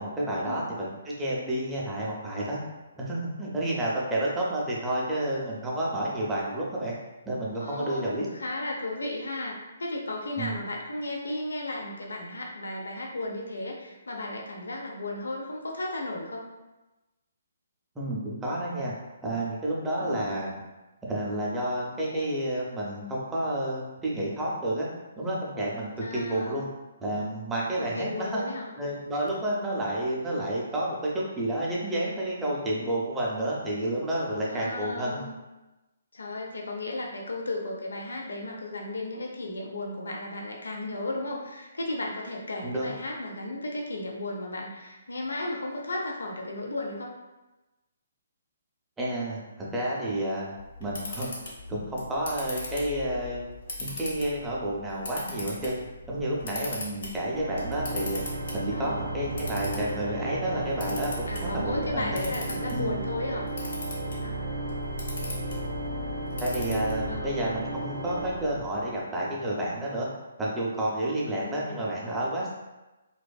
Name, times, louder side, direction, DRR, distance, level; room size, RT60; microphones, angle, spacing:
voice 1, 0.0-2.6 3.0-6.9 7.2-8.3 10.4-10.5 18.0-18.9 19.2-20.6 21.0-24.9 25.2-26.7 27.0-28.4 28.8-35.2 42.6-42.9 49.0-50.5 50.8-51.3 51.7-53.4 53.8-58.2 58.5-62.2 62.7-62.9 66.4-70.1 70.4-72.5, right 1 dB, 10° right, -6 dB, 0.5 m, -30 dB
voice 2, 7.6-16.5 20.0-20.5 26.0-26.7 27.8-28.7 34.5-35.4 36.1-47.1 58.7-59.0 61.3-63.5 64.2-64.4 67.1-67.4 71.3-71.9, left 2 dB, 85° left, 0 dB, 0.4 m, -34 dB
Camera, 50.6-67.3, left 2 dB, 65° left, 0.8 m, -40 dB
Organ, 57.3-69.2, right 2 dB, 80° right, 0.4 m, -34 dB
2.4 x 2.2 x 2.2 m, 1.1 s
hypercardioid pair, 150°, 0 cm